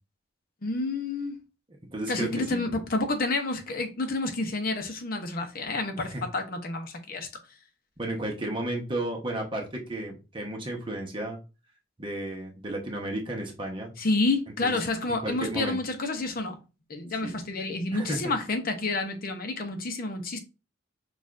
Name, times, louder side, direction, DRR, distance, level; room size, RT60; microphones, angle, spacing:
voice 1, 0.6-1.4 2.1-7.3 14.0-16.6 16.9-20.4, left 2 dB, 45° left, 0.7 m, -29 dB
voice 2, 1.9-2.7 6.0-6.2 8.0-11.4 12.0-13.9 14.6-14.8 15.2-15.8 17.2-17.4 17.9-18.2, right 1 dB, 25° right, 1.0 m, -33 dB
6.4 x 2.4 x 2.5 m
head